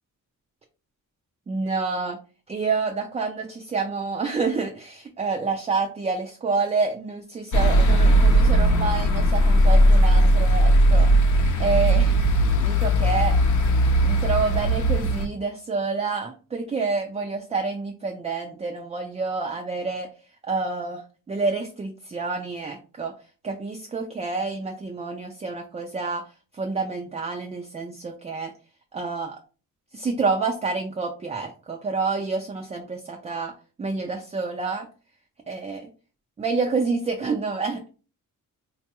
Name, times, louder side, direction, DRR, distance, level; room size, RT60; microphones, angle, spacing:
voice 1, 1.5-2.2 2.5-11.1 11.6-12.2 12.6-13.4 14.0-20.1 20.4-23.1 23.4-26.2 26.5-28.5 28.9-29.4 29.9-33.5 33.8-34.9 35.5-35.9 36.4-37.8, right 4 dB, 20° right, 2 dB, 0.4 m, -28 dB
sound 1, 7.5-15.3, right 1 dB, 60° left, 0.6 m, -18 dB
3.9 x 2.2 x 2.9 m, 0.35 s
wide cardioid pair, 145°, 33 cm